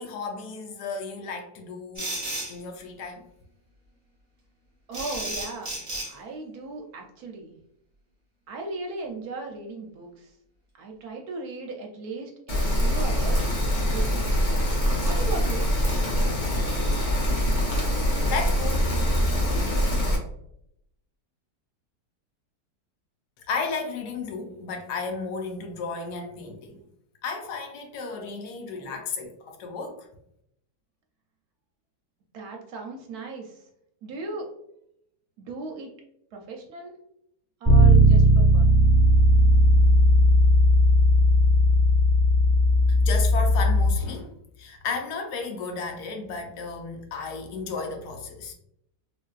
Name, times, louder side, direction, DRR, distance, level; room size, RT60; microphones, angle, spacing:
voice 1, 0.0-2.2 2.5-3.2 18.3-19.5 23.5-26.8 27.2-30.1 42.9-48.5, left 4 dB, 75° left, 1.1 m, -34 dB
sound 1, 2.0-2.6 4.9-6.1, right 1 dB, 30° right, 0.6 m, -33 dB
voice 2, 4.9-5.8 6.1-7.5 8.5-10.3 10.8-14.3 15.0-15.7 32.3-33.6 34.0-34.5 35.4-35.9 36.3-37.0 37.6-38.8, right 3 dB, 70° right, 1.0 m, -37 dB
Rain, 12.5-20.2, equal, 45° left, 0.6 m, -24 dB
Bass guitar, 37.6-43.9, equal, 10° right, 1.1 m, -17 dB
3.4 x 2.6 x 2.3 m
omnidirectional pair, 1.8 m